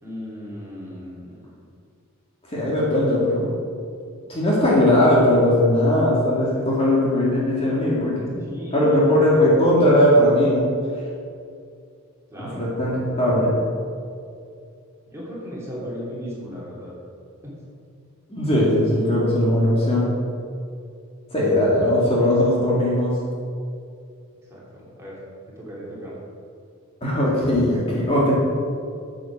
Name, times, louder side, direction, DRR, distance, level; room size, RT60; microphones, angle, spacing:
voice 1, 0.0-1.5 8.4-9.2 12.3-12.7 15.1-16.9 17.4-17.6 24.5-25.1 25.6-26.1, equal, 15° right, -7 dB, 2.9 m, -36 dB
voice 2, 2.5-3.5 4.3-8.4 8.7-10.6 12.4-13.6 18.3-20.2 21.3-23.2 27.0-28.3, left 1 dB, 25° left, -6 dB, 2.2 m, -19 dB
9.0 x 8.5 x 6.1 m, 2.4 s
head